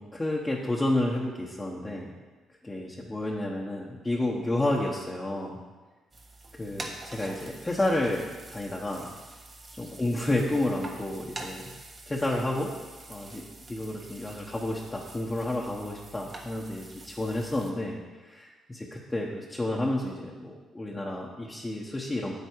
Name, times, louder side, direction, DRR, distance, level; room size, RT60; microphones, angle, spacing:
voice 1, 0.0-2.1 2.6-5.6 6.6-9.1 9.8-11.7 12.1-12.7 13.1-13.4 13.7-22.3, left 1 dB, 20° left, -3 dB, 1.2 m, -30 dB
sound 1, 6.1-17.7, right 2 dB, 30° right, 1.3 m, -46 dB
8.6 x 8.4 x 4.7 m, 1.3 s
cardioid pair, 90°, 0 cm